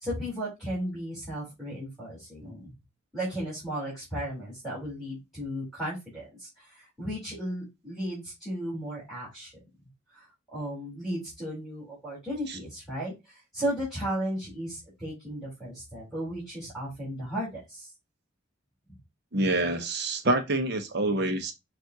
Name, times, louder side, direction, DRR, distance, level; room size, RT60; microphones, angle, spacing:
voice 1, 0.0-2.7 3.1-9.5 10.1-10.2 10.5-17.9 18.9-19.0, equal, ahead, 3.3 m, -35 dB
voice 2, 19.3-21.5, right 2 dB, 55° right, 0.8 m, -27 dB
6.9 x 2.5 x 2.7 m
head